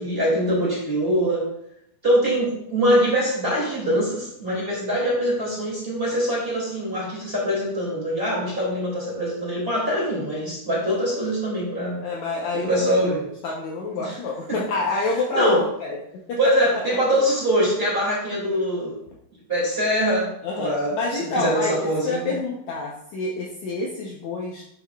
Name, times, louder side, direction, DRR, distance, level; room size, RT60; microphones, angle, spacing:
voice 1, 0.0-1.5 2.0-12.0 12.5-13.2 13.9-14.2 14.5-14.6 15.3-15.6 16.4-18.9 19.5-20.3 20.6-22.3, equal, 20° right, -6 dB, 1.8 m, -23 dB
voice 2, 12.0-13.1 13.4-16.8 18.4-18.6 20.4-24.6, left 3 dB, 85° left, -2 dB, 1.6 m, -28 dB
10.5 x 5.7 x 2.3 m, 0.76 s
omnidirectional pair, 4.4 m